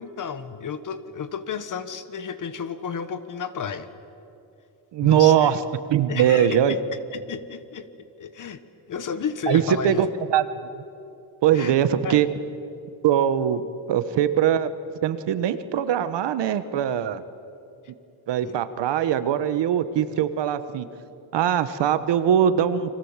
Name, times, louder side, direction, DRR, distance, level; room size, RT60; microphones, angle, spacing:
voice 1, 0.0-3.9 5.0-5.5 6.1-6.8 7.1-7.9 8.2-8.6 8.9-10.1 11.5-11.7 12.0-12.2 18.4-18.6, left 6 dB, 40° left, 12 dB, 1.3 m, -32 dB
voice 2, 4.9-5.6 5.9-6.8 9.5-10.4 11.4-12.3 13.0-13.6 13.9-14.7 15.0-17.2 18.3-20.9 21.3-23.0, right 10 dB, 60° right, 12 dB, 1.3 m, -21 dB
30.0 x 23.5 x 7.4 m, 2.7 s
cardioid pair, 145°, 46 cm